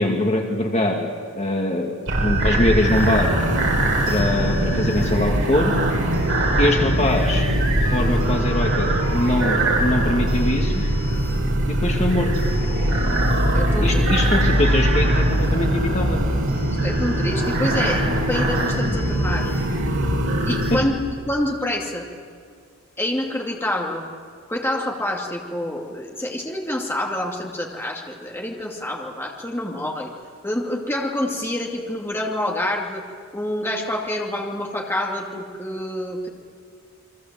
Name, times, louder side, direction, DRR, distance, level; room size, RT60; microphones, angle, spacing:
voice 1, 0.0-1.9 2.2-3.3 4.1-5.7 6.6-7.5 7.9-10.8 11.7-12.3 13.8-16.2 20.7-20.8, left 1 dB, 30° left, 1 dB, 2.2 m, -23 dB
sound 1, 2.1-20.8, right 1 dB, 60° right, 5.0 m, -21 dB
voice 2, 13.5-14.1 16.8-19.5 20.5-20.9 21.2-22.1 23.0-24.1 24.5-30.1 30.4-33.0 33.3-36.3, left 1 dB, 10° left, -1 dB, 2.5 m, -27 dB
29.0 x 23.0 x 7.7 m, 2.1 s
head